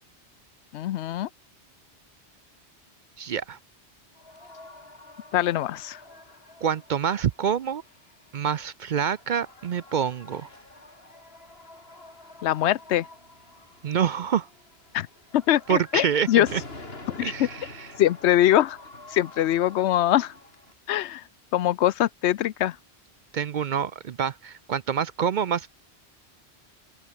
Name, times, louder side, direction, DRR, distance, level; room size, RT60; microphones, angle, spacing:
voice 1, 0.7-1.3 5.3-6.0 12.4-13.0 14.9-15.1 15.3-16.5 17.1-17.5 18.0-18.8 19.1-20.3 20.9-21.2 21.5-22.7, left 13 dB, 80° left, 0.9 m, -23 dB
voice 2, 3.2-3.6 6.6-7.8 8.3-10.5 13.8-14.5 15.7-16.6 17.2-17.9 23.3-25.7, right 8 dB, 55° right, 0.6 m, -27 dB
sound 1, 4.1-20.7, left 2 dB, 65° left, 4.4 m, -47 dB
open air
omnidirectional pair, 1.1 m